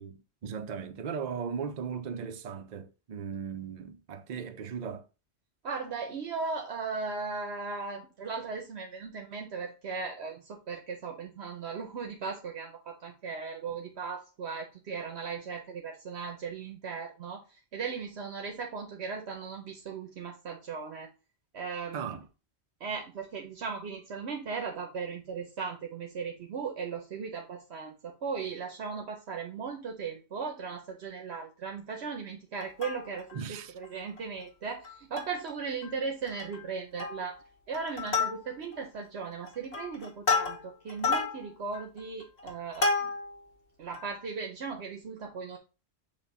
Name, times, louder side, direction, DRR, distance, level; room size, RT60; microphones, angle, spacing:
voice 1, 0.0-5.1 21.9-22.3 33.3-33.7, right 6 dB, 50° right, 0.6 m, -37 dB
voice 2, 5.6-21.1 21.5-22.2 22.8-37.4 37.7-43.1 43.8-45.6, right 5 dB, 70° right, 1.1 m, -37 dB
Plucked string instrument, 32.6-33.4 33.8-33.9 34.2-34.4 34.8-35.5 35.8-35.9 36.3-36.6 37.0-37.4 37.7-38.8 39.3-43.4 43.9-44.0, left 4 dB, 70° left, 1.7 m, -31 dB
6.8 x 2.7 x 5.3 m
omnidirectional pair, 1.1 m